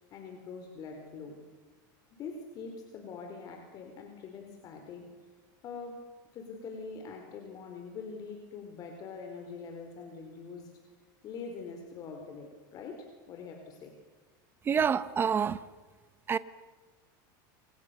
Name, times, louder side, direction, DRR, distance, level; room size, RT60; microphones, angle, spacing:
voice 1, 0.0-1.4 2.2-5.1 5.6-10.7 11.2-13.9, left 5 dB, 35° left, 4.4 m, -44 dB
voice 2, 14.6-15.6 16.3-16.4, right 7 dB, 20° right, 1.2 m, -27 dB
28.0 x 27.5 x 7.0 m
supercardioid pair, 145°, 11 cm